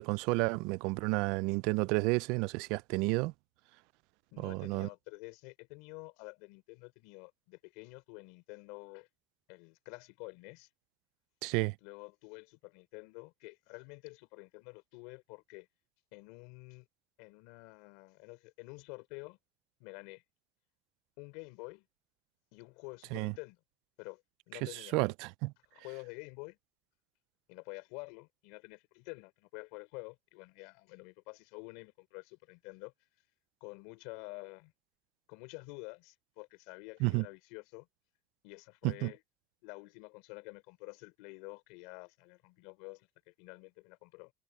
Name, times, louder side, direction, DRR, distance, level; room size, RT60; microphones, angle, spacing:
voice 1, 0.0-3.3 4.4-4.9 11.4-11.7 23.1-23.3 24.6-25.5 37.0-37.2 38.8-39.1, right 25 dB, 75° right, 0.3 m, -31 dB
voice 2, 4.3-9.1 9.5-10.7 11.8-15.7 16.1-16.9 17.2-19.4 19.8-20.2 21.2-21.9 22.5-23.6 24.0-24.2 24.5-25.0 25.7-26.6 27.5-32.9 33.6-34.7 35.3-37.9 38.4-39.2 39.6-44.3, left 28 dB, 90° left, 4.4 m, -49 dB
cardioid pair, 170°, 0 cm